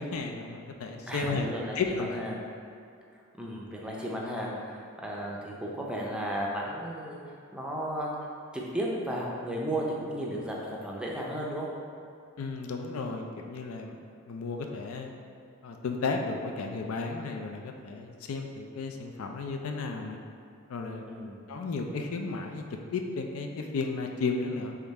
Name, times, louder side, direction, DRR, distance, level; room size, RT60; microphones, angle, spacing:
voice 1, 0.0-1.5 1.8-2.2 12.4-14.0 14.2-15.1 15.6-20.2 20.7-21.0 21.5-22.7 22.9-24.8, left 4 dB, 75° left, 3 dB, 0.4 m, -33 dB
voice 2, 1.1-2.4 3.4-7.2 7.5-8.1 8.5-11.7 21.1-21.4, right 1 dB, 5° right, -3 dB, 0.5 m, -34 dB
3.7 x 3.4 x 4.1 m, 2.4 s
head